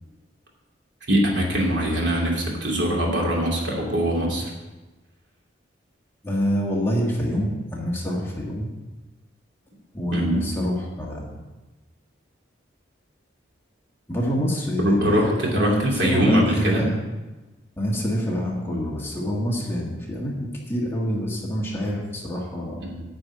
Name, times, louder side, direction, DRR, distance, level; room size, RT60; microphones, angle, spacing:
voice 1, 1.1-4.5 10.1-10.4 14.8-16.9 22.8-23.0, equal, 65° right, -1 dB, 2.6 m, -22 dB
voice 2, 6.2-8.7 9.9-11.3 14.1-17.0 17.8-22.8, equal, 10° left, -3 dB, 1.7 m, -26 dB
9.7 x 6.1 x 8.5 m, 1.2 s
head